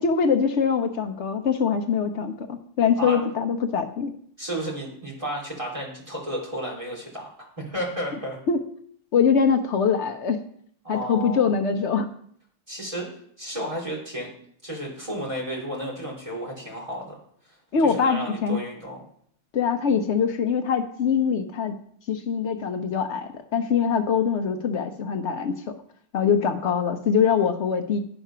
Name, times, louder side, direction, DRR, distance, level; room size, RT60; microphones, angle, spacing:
voice 1, 0.0-4.1 8.5-8.6 9.1-10.4 10.9-12.1 17.7-18.6 19.5-21.8 22.1-25.8 26.1-28.0, left 6 dB, 70° left, 7 dB, 1.0 m, -23 dB
voice 2, 4.4-7.3 7.6-8.4 10.8-11.5 12.7-13.1 13.4-14.3 14.6-17.2 17.8-19.0, equal, 25° right, -3 dB, 2.8 m, -32 dB
11.0 x 4.8 x 5.5 m, 0.64 s
omnidirectional pair, 1.3 m